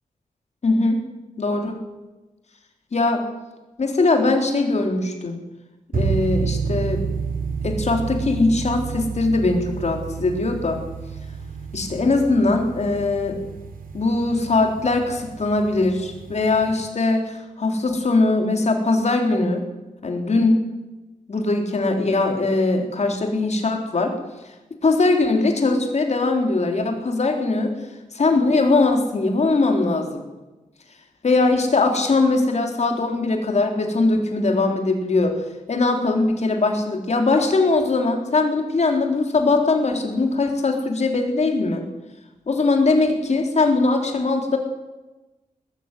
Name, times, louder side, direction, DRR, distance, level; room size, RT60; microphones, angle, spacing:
voice 1, 0.6-1.0 1.4-1.8 2.9-3.2 3.8-5.4 5.9-7.0 7.6-10.8 11.7-13.4 13.9-19.6 20.0-20.6 21.3-24.1 24.8-27.7 28.1-30.2 31.2-35.3 35.7-41.8 42.5-44.6, left 3 dB, 50° left, 3 dB, 3.9 m, -21 dB
sound 1, 5.9-16.7, right 5 dB, 80° right, 2.8 m, -30 dB
20.5 x 14.0 x 9.3 m, 1.1 s
wide cardioid pair, 130°, 14 cm